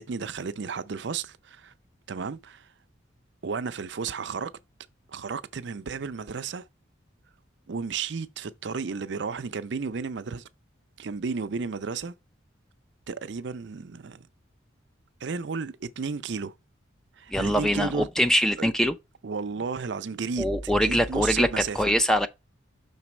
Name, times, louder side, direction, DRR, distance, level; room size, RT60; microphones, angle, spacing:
voice 1, 0.0-1.7 2.1-2.7 3.4-4.5 5.1-6.6 7.7-10.4 11.0-12.1 13.1-14.3 15.2-16.5 17.2-18.1 18.6-18.7 19.2-22.0, right 5 dB, 60° right, 0.5 m, -33 dB
voice 2, 17.3-18.9 20.4-21.5 21.7-22.3, equal, 5° left, 0.4 m, -23 dB
6.0 x 4.0 x 4.2 m
head